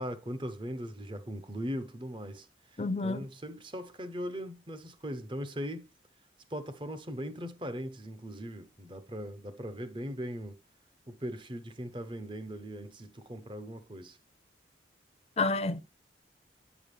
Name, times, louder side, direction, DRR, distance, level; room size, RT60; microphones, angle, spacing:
voice 1, 0.0-5.9 6.5-10.5 11.1-14.2, equal, 25° right, 0.9 m, -39 dB
voice 2, 2.8-3.3 15.4-15.8, left 3 dB, 35° left, 0.6 m, -29 dB
9.1 x 7.1 x 3.3 m
head